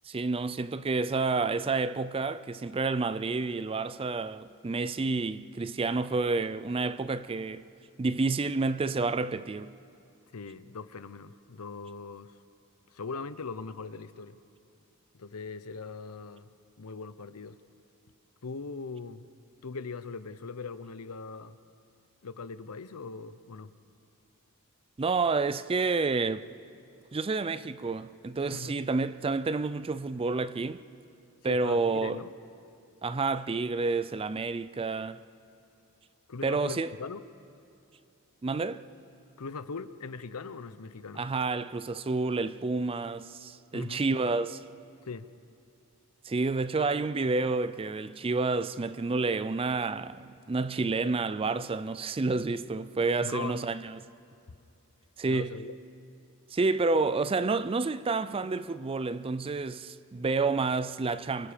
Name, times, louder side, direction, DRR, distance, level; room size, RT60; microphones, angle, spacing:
voice 1, 0.1-7.6 8.0-9.7 25.0-26.5 27.1-30.8 31.4-32.2 33.0-35.2 36.4-36.9 38.4-38.8 41.2-44.6 46.3-54.0 55.2-55.5 56.5-61.5, right 3 dB, 25° right, 0.4 m, -29 dB
voice 2, 10.3-12.4 12.9-14.4 15.1-16.5 16.8-17.6 18.4-19.3 19.6-21.6 22.2-23.7 28.5-28.8 31.4-32.3 36.3-37.3 39.4-41.3 43.7-44.0 45.0-45.3 53.2-53.7 55.2-55.7, left 4 dB, 80° left, 0.8 m, -40 dB
27.0 x 23.0 x 5.1 m
head